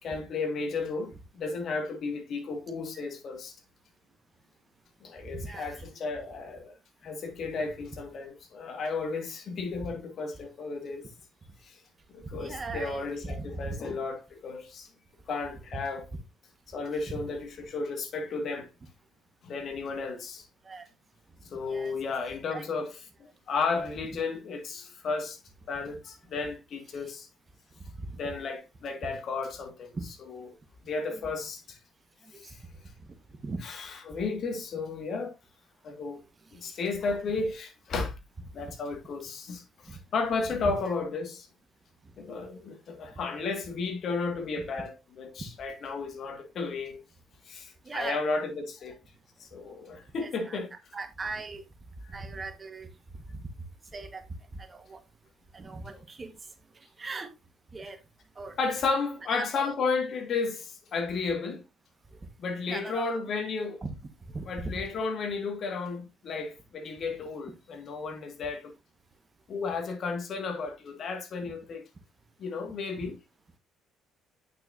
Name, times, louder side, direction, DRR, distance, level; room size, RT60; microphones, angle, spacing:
voice 1, 0.0-3.6 5.0-6.7 7.0-11.1 11.6-11.8 12.1-14.9 15.3-16.0 16.7-18.7 19.4-20.5 21.4-22.9 23.2-25.4 25.7-27.3 28.2-29.9 30.9-31.8 32.5-32.6 34.1-35.3 35.8-36.2 36.5-38.1 38.5-41.5 42.2-47.0 47.5-49.0 49.4-50.7 58.6-61.6 62.4-63.8 64.5-68.7 69.5-71.8 72.4-73.1, left 4 dB, 55° left, 1.9 m, -33 dB
voice 2, 5.2-5.8 7.6-7.7 12.3-13.7 15.5-15.8 16.9-17.3 20.6-20.8 21.7-21.9 22.2-22.7 27.0-27.1 28.1-28.2 29.9-30.1 31.1-31.3 32.2-32.6 33.4-33.6 36.6-36.7 37.3-37.4 39.9-40.0 40.6-40.9 44.6-44.7 47.8-48.2 50.2-51.6 52.1-52.9 53.3-53.5 53.9-54.2 54.6-55.0 55.5-56.4 56.7-57.3 57.7-58.0 58.4-58.6 59.3-59.8 62.7-63.2 63.8-63.9 64.3-64.8 73.0-73.1, right 3 dB, 35° right, 1.4 m, -39 dB
8.8 x 5.9 x 2.7 m
hypercardioid pair, 55°, 0 cm